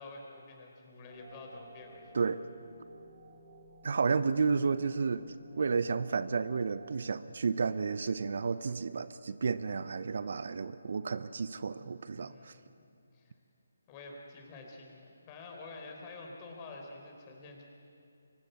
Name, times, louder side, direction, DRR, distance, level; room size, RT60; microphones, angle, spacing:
voice 1, 0.0-2.2 12.1-12.7 13.1-13.3 13.9-17.6, left 3 dB, 25° left, 1 dB, 4.2 m, -48 dB
sound 1, 1.1-7.0, right 2 dB, 40° right, 3.1 m, -55 dB
voice 2, 3.8-5.2 5.5-12.6, right 5 dB, 60° right, 14 dB, 0.7 m, -31 dB
23.5 x 19.5 x 8.1 m, 2.6 s
figure-of-eight pair, 150°, 0 cm